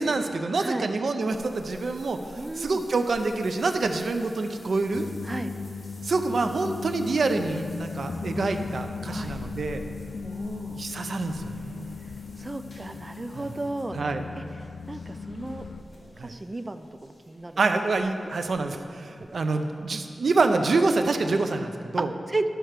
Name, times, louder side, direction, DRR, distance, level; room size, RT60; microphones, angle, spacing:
voice 1, 0.0-2.2 2.6-5.1 6.0-9.8 10.7-11.9 13.4-13.5 13.9-14.2 16.2-16.3 17.6-22.1, right 3 dB, 70° right, 6 dB, 0.6 m, -26 dB
sound 1, 1.3-20.0 20.3-20.4 20.9-21.0, left 1 dB, 55° left, 1.6 m, -49 dB
voice 2, 2.4-2.8 5.2-5.5 9.1-9.4 10.2-10.8 12.4-14.0 14.4-14.5 14.9-15.6 16.2-17.6 19.2-19.3 22.0-22.5, right 2 dB, 25° right, 8 dB, 0.4 m, -34 dB
sound 2, 4.9-15.8, left 5 dB, 75° left, 0.4 m, -37 dB
11.5 x 4.5 x 6.6 m, 2.4 s
wide cardioid pair, 105°, 0 cm